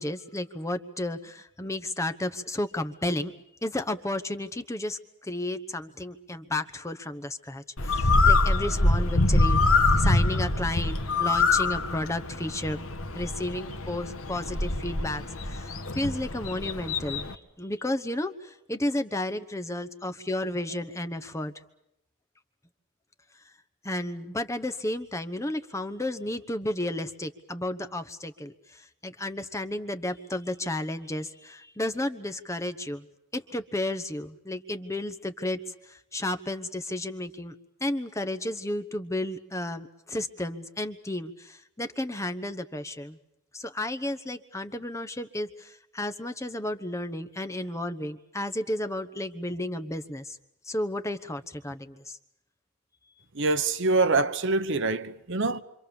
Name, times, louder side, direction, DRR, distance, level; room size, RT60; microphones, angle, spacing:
voice 1, 0.0-3.3 3.6-12.9 13.1-21.5 23.8-33.1 33.3-37.5 37.8-43.2 43.5-50.4 50.6-52.2, left 1 dB, 15° left, 1.0 m, -32 dB
Bird, 7.8-17.3, left 2 dB, 65° left, 1.6 m, -25 dB
voice 2, 53.4-55.6, right 3 dB, 55° right, 1.1 m, -25 dB
27.0 x 26.0 x 7.1 m
head